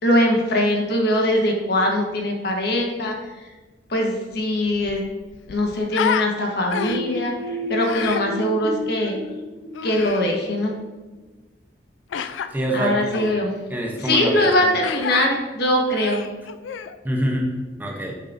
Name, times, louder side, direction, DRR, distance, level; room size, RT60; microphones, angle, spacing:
voice 1, 0.0-3.5 3.9-5.0 5.5-9.2 9.8-10.8 12.7-13.6 14.0-16.2, left 1 dB, 60° left, 1 dB, 1.2 m, -22 dB
Human voice, 4.3-4.4 4.7-6.3 6.7-7.2 7.8-8.3 9.7-10.3 12.1-12.5 13.1-13.3 14.3-14.6 14.8-15.3 15.9-17.0, left 7 dB, 85° left, 0.4 m, -29 dB
sound 1, 6.7-10.4, left 1 dB, 55° right, 1.3 m, -31 dB
voice 2, 12.5-13.3 13.7-14.7 17.0-18.1, equal, 10° right, 0 dB, 0.8 m, -25 dB
8.4 x 6.1 x 2.6 m, 1.2 s
head